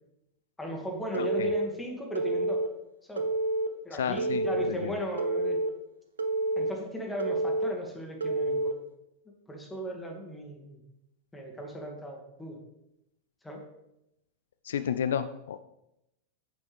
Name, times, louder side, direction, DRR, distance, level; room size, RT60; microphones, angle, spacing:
voice 1, 0.6-2.6 3.1-3.3 3.8-5.6 6.6-8.7 9.5-10.8 11.3-12.6 13.4-13.6, equal, 10° left, 1 dB, 2.0 m, -37 dB
Telephone, 1.1-1.7 2.1-2.7 3.2-3.7 4.2-4.7 5.2-5.7 6.2-6.7 7.2-7.7 8.2-8.7, right 2 dB, 70° right, 0.7 m, -28 dB
voice 2, 1.2-1.5 4.0-4.9 14.6-15.6, left 8 dB, 60° left, 12 dB, 0.3 m, -32 dB
8.6 x 8.4 x 3.4 m, 0.85 s
figure-of-eight pair, 90°, 0 cm